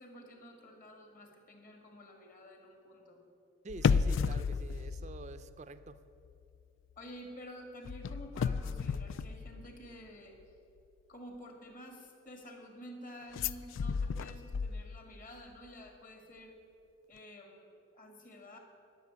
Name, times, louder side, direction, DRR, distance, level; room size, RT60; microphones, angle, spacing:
voice 1, 0.0-3.2 7.0-10.4 11.1-16.6 17.1-18.6, equal, 40° left, 3 dB, 1.9 m, -50 dB
voice 2, 3.6-6.0, right 3 dB, 35° right, 12 dB, 0.4 m, -47 dB
sound 1, 3.7-6.0 6.3-6.6 7.9-10.1 13.3-15.2 15.5-15.6, left 5 dB, 65° left, 0.3 m, -33 dB
12.5 x 6.6 x 9.6 m, 2.7 s
head